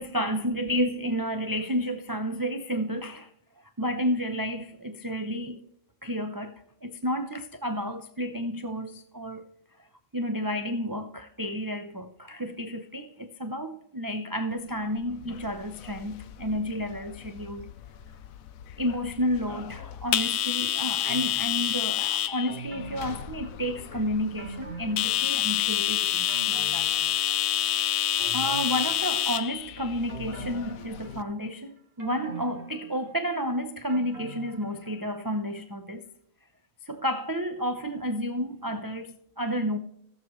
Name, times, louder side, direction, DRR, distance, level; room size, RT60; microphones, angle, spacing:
voice 1, 0.0-3.3 3.8-5.6 6.0-9.5 10.1-17.7 18.8-26.9 28.3-36.1 36.9-39.8, equal, 25° right, 0.5 m, -31 dB
sound 1, 15.1-31.2, left 12 dB, 85° left, 1.1 m, -29 dB
sound 2, 21.0-21.9 22.5-23.9 24.4-25.7 26.0-27.7 28.2-29.5 30.1-31.5 32.0-35.2 35.6-35.7, right 3 dB, 45° right, 2.3 m, -44 dB
17.5 x 7.2 x 3.1 m
omnidirectional pair, 1.4 m